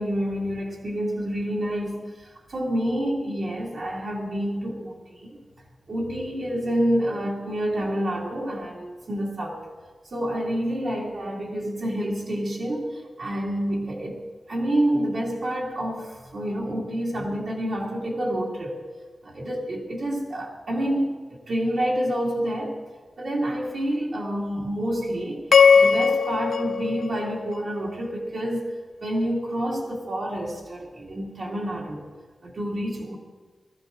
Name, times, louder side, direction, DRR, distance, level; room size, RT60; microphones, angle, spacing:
voice 1, 0.0-5.4 5.9-9.7 10.1-14.2 14.5-18.8 19.2-22.8 23.2-25.5 25.7-32.1 32.4-33.2, equal, 55° right, -5 dB, 2.3 m, -28 dB
sound 1, 25.5-27.9, left 6 dB, 90° left, 0.5 m, -19 dB
20.0 x 14.0 x 3.8 m, 1.4 s
wide cardioid pair, 145°, 0 cm